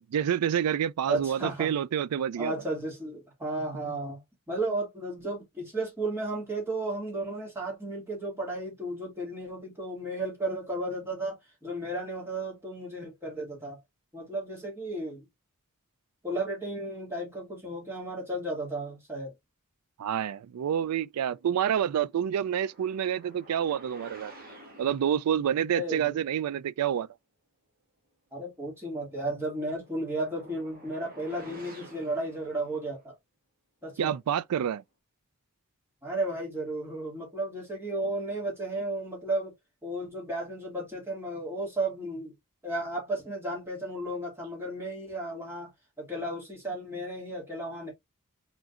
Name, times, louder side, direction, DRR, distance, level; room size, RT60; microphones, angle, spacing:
voice 1, 0.0-2.5 20.0-24.3 24.8-27.1 34.0-34.8, right 9 dB, 90° right, 0.3 m, -28 dB
voice 2, 1.1-1.8 2.4-4.2 4.5-13.8 14.1-15.2 16.2-19.3 25.7-26.1 28.3-33.2 33.8-34.2 36.0-39.5 39.8-42.3 42.6-45.7 46.0-47.9, right 1 dB, 10° right, 2.3 m, -34 dB
sound 1, 22.3-25.3 29.2-33.0, right 1 dB, 40° right, 1.7 m, -51 dB
4.9 x 3.8 x 2.4 m
head